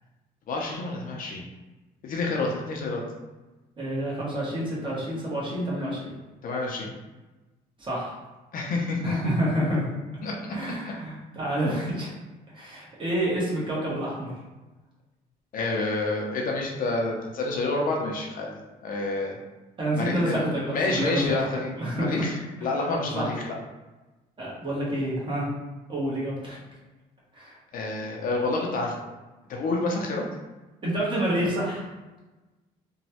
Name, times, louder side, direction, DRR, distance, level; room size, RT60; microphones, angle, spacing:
voice 1, 0.5-1.4 2.0-3.0 6.4-6.9 8.5-9.3 10.2-10.4 10.6-10.7 15.5-19.4 20.0-20.4 20.7-22.3 22.6-23.5 27.7-29.0 29.5-30.2, left 3 dB, 55° left, 0 dB, 0.6 m, -28 dB
voice 2, 3.8-6.1 7.8-8.2 9.0-9.9 10.5-12.1 12.5-14.3 19.8-22.2 22.6-22.7 23.1-23.3 24.4-25.5 25.9-26.6 27.3-27.6 30.8-31.9, right 1 dB, 30° right, -6 dB, 1.2 m, -28 dB
3.0 x 2.2 x 2.8 m, 1.1 s
cardioid pair, 110°, 17 cm